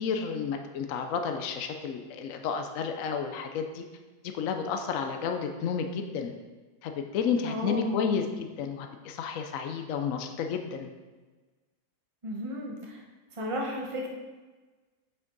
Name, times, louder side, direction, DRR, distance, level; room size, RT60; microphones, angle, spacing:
voice 1, 0.0-3.8 4.3-6.3 6.8-10.9, left 6 dB, 70° left, 5 dB, 0.7 m, -31 dB
voice 2, 7.4-8.0 12.2-13.0 13.3-14.1, equal, 25° right, -1 dB, 0.8 m, -34 dB
7.8 x 5.8 x 3.9 m, 1.3 s
omnidirectional pair, 2.0 m